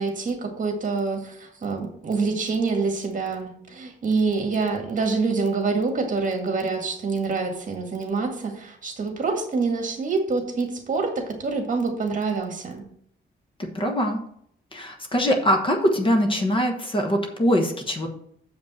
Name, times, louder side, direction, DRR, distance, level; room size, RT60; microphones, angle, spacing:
voice 1, 0.0-12.8, right 4 dB, 40° right, 3 dB, 1.9 m, -26 dB
voice 2, 13.6-14.2 14.7-18.1, equal, 25° left, 3 dB, 1.1 m, -22 dB
7.3 x 5.2 x 7.3 m, 0.68 s
wide cardioid pair, 160°, 20 cm